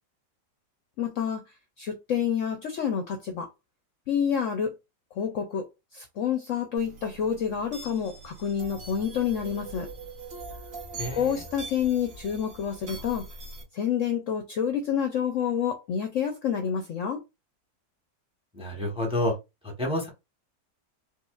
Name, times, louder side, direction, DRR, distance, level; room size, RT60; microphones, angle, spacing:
voice 1, 1.0-1.4 1.8-3.5 4.1-4.7 5.1-5.7 5.9-9.9 11.1-13.3 13.7-17.2, left 8 dB, 65° left, 0.8 m, -28 dB
sound 1, 6.8-13.6, right 3 dB, 55° right, 1.7 m, -42 dB
voice 2, 11.0-11.4 18.5-19.3 19.6-20.1, left 1 dB, 5° right, 0.9 m, -29 dB
4.6 x 2.6 x 2.3 m
omnidirectional pair, 1.8 m